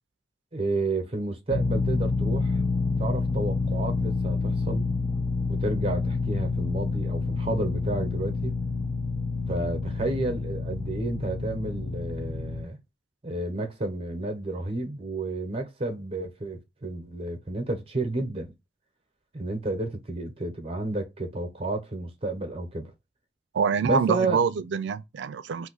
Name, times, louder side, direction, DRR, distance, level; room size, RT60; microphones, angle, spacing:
voice 1, 0.5-2.6 3.0-4.8 5.5-8.6 9.5-12.8 13.2-18.5 19.3-22.9 23.8-24.4, right 2 dB, 35° right, 0.8 m, -31 dB
sound 1, 1.5-12.6, left 4 dB, 25° left, 0.5 m, -28 dB
voice 2, 23.5-25.7, right 6 dB, 85° right, 0.4 m, -26 dB
2.5 x 2.4 x 3.8 m
head